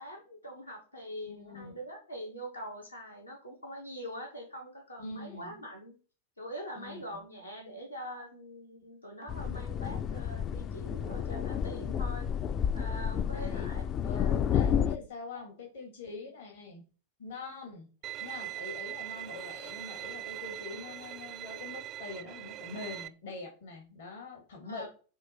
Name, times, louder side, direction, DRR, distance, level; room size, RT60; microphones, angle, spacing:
voice 1, 0.0-6.0 6.4-12.3 12.7-13.8 14.1-14.3 16.2-16.3 20.7-20.8 24.6-24.9, equal, 80° left, 1 dB, 2.0 m, -43 dB
voice 2, 1.3-1.7 5.0-5.6 6.8-7.2 13.3-13.7 14.0-16.8 17.2-17.9 18.2-24.9, left 4 dB, 55° left, 2 dB, 1.9 m, -44 dB
sound 1, 9.3-15.0, left 8 dB, 30° left, 0.4 m, -31 dB
Bowed string instrument, 18.0-23.1, right 15 dB, 35° right, 0.4 m, -41 dB
7.3 x 3.1 x 4.2 m, 0.37 s
figure-of-eight pair, 90°, 0 cm